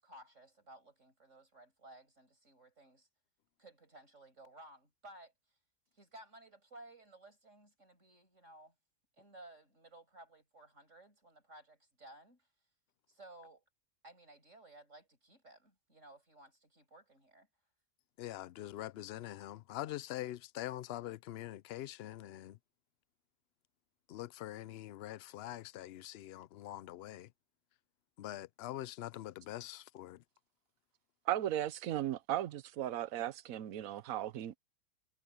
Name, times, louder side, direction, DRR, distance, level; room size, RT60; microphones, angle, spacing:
voice 1, 0.0-3.1 3.6-5.3 5.9-8.8 9.2-12.5 13.1-13.6 14.0-17.5, right 1 dB, 55° right, 7.0 m, -57 dB
voice 2, 18.2-22.6 24.1-27.3 28.2-30.2, left 14 dB, 65° left, 0.6 m, -44 dB
voice 3, 31.3-34.6, right 12 dB, 70° right, 1.2 m, -36 dB
omnidirectional pair, 1.5 m